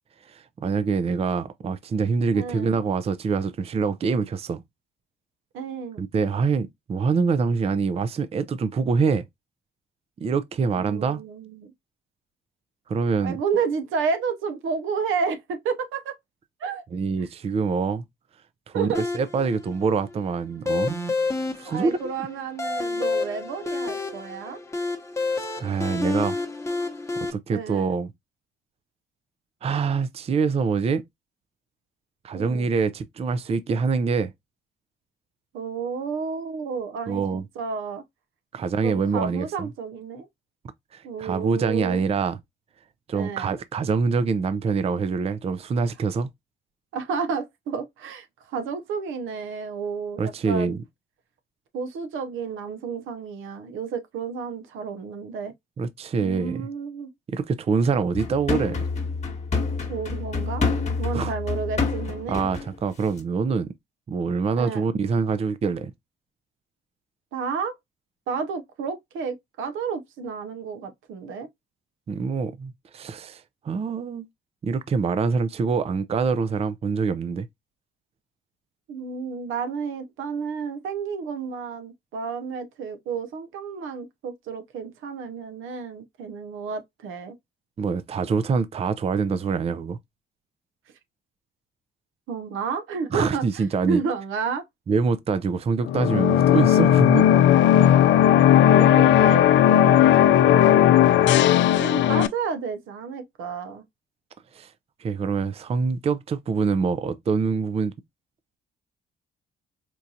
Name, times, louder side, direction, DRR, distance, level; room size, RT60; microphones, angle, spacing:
voice 1, 0.3-4.6 6.0-9.2 10.2-11.2 12.9-13.4 16.9-18.0 18.7-21.0 21.6-22.1 25.6-26.4 27.3-28.1 29.6-31.0 32.2-34.3 37.1-37.4 38.5-39.7 40.9-42.4 43.1-46.3 50.2-50.8 55.8-56.7 57.3-58.8 61.1-61.3 62.3-63.7 64.1-65.9 72.1-74.3 74.6-77.5 87.8-90.0 93.1-94.0 94.9-97.3 104.5-104.7 105.0-107.9, right 5 dB, 30° right, 0.4 m, -25 dB
voice 2, 2.3-2.7 5.5-6.0 10.8-11.7 13.2-16.1 16.6-16.8 18.7-19.0 21.6-24.6 27.5-27.9 32.3-32.7 35.5-38.0 38.8-40.3 41.0-42.0 43.1-43.5 46.9-50.7 51.7-55.5 56.2-57.1 59.9-60.6 61.0-62.4 64.6-64.8 67.3-67.7 68.3-71.5 78.9-87.4 92.3-94.7 98.6-99.4 99.7-100.9 101.2-101.3 101.7-103.8, right 5 dB, 85° right, 0.7 m, -31 dB
sound 1, 18.9-27.3, left 3 dB, 15° left, 0.9 m, -29 dB
sound 2, 58.1-62.8 63.1-63.2, left 4 dB, 35° left, 1.2 m, -27 dB
sound 3, 95.8-102.3, left 11 dB, 70° left, 0.4 m, -16 dB
4.4 x 2.4 x 2.6 m
cardioid pair, 90°, 20 cm